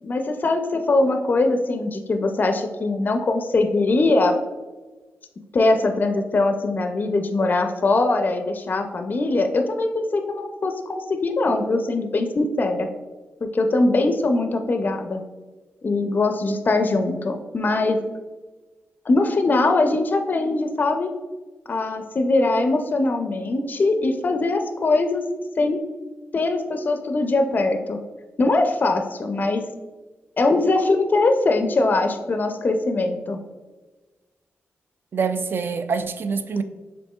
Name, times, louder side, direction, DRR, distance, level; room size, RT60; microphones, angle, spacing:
voice 1, 0.0-4.4 5.5-12.9 13.4-15.2 15.8-18.0 19.1-21.1 21.7-25.2 25.6-25.8 26.3-28.0 28.4-29.6 30.4-33.4, left 2 dB, 40° left, 6 dB, 0.4 m, -21 dB
voice 2, 35.1-36.6, right 5 dB, 50° right, 9 dB, 0.4 m, -25 dB
7.0 x 2.6 x 2.3 m, 1.3 s
cardioid pair, 80°, 5 cm